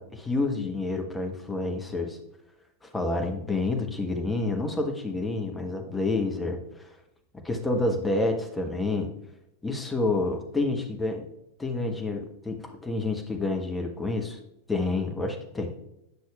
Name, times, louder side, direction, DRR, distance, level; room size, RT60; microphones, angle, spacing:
voice 1, 0.0-2.2 2.8-6.9 7.4-9.1 9.6-11.3 11.6-14.4 14.7-15.8, left 2 dB, 10° left, 3 dB, 1.1 m, -29 dB
9.6 x 6.1 x 2.4 m, 0.85 s
figure-of-eight pair, 90°, 0 cm